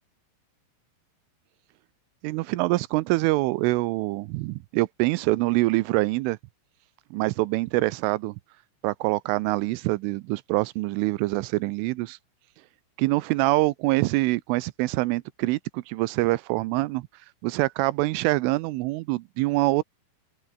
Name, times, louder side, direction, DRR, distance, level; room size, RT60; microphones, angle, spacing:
voice 1, 2.2-6.4 7.1-8.3 8.8-12.2 13.0-17.1 17.4-19.8, right 21 dB, 80° right, 3.1 m, -25 dB
open air
omnidirectional pair, 5.9 m